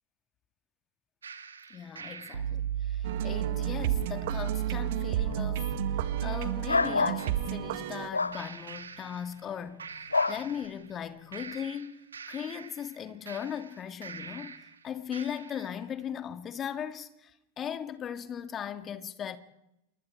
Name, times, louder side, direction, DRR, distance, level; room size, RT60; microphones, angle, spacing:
sound 1, 1.2-7.4 8.3-9.5 9.8-11.0 11.3-14.7 15.1-15.8, right 9 dB, 70° right, 2.0 m, -36 dB
voice 1, 1.7-5.7 6.2-10.0 10.3-19.4, left 8 dB, 25° left, 2.1 m, -38 dB
sound 2, 3.0-8.1, right 13 dB, 50° right, 1.6 m, -33 dB
sound 3, 6.7-7.2 8.1-8.4 10.1-10.4, left 3 dB, 80° left, 0.9 m, -26 dB
28.5 x 23.5 x 4.7 m
figure-of-eight pair, 90°, 0 cm